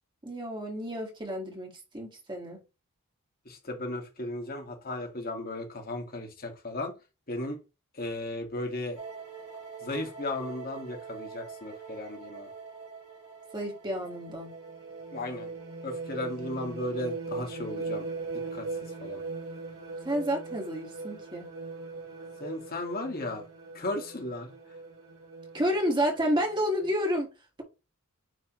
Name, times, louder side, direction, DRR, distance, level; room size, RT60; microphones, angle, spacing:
voice 1, 0.2-2.6 13.5-14.5 20.0-21.5 25.5-27.3, equal, 20° right, 1.8 m, -30 dB
voice 2, 3.5-6.9 7.3-7.6 7.9-9.0 9.8-12.5 15.1-15.5 15.8-18.1 18.5-18.7 19.0-19.2 22.4-23.4 23.7-24.5, left 2 dB, 40° left, 2.0 m, -35 dB
sound 1, 9.0-26.9, right 4 dB, 80° right, 2.7 m, -40 dB
9.6 x 3.5 x 3.1 m
head